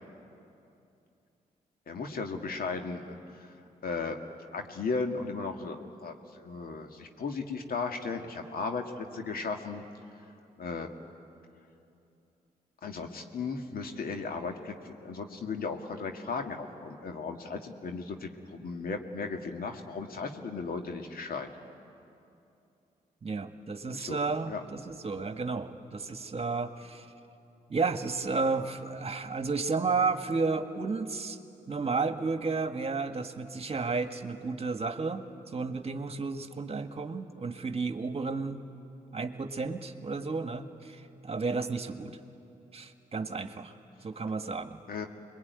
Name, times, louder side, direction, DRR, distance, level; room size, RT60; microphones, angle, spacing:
voice 1, 1.9-3.5 3.8-4.2 4.5-9.8 10.6-10.9 12.8-21.5 23.9-24.2 24.5-24.6 44.9-45.1, left 4 dB, 65° left, 4 dB, 2.2 m, -36 dB
voice 2, 23.2-27.1 27.7-31.4 31.7-38.6 39.1-42.2 42.7-43.7 44.0-44.8, right 4 dB, 40° right, 8 dB, 1.7 m, -32 dB
25.5 x 21.5 x 9.6 m, 2.7 s
supercardioid pair, 50°, 16 cm